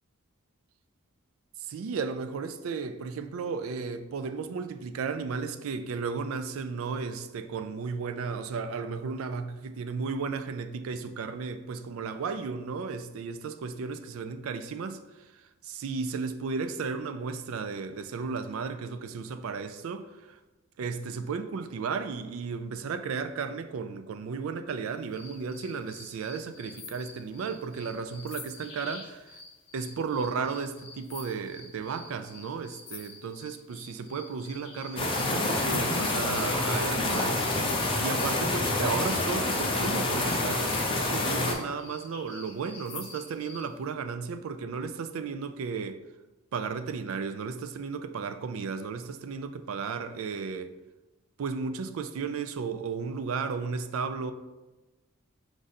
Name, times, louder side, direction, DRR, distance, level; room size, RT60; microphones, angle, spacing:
voice 1, 1.6-15.0 15.6-20.4 20.8-29.4 29.7-37.4 38.0-40.7 41.1-46.0 46.5-50.7 51.4-54.3, right 5 dB, 75° right, 0.3 m, -34 dB
sound 1, 25.1-38.4 38.9-43.7, left 4 dB, 60° left, 0.9 m, -47 dB
sound 2, 35.0-41.5, left 2 dB, 25° left, 0.6 m, -27 dB
4.7 x 2.5 x 4.1 m
head